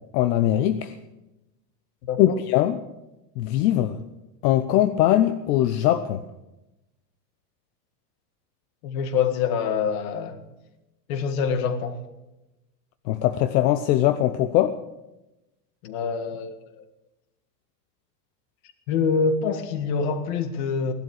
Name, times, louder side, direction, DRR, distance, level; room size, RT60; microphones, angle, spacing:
voice 1, 0.1-1.0 2.2-2.8 3.4-4.0 4.4-6.2 13.1-14.8, left 12 dB, 70° left, 0.9 m, -21 dB
voice 2, 2.0-2.4 8.8-10.4 11.1-12.0 15.8-16.6 18.9-20.9, left 6 dB, 55° left, 1.9 m, -25 dB
17.5 x 12.0 x 6.6 m
supercardioid pair, 160°, 50 cm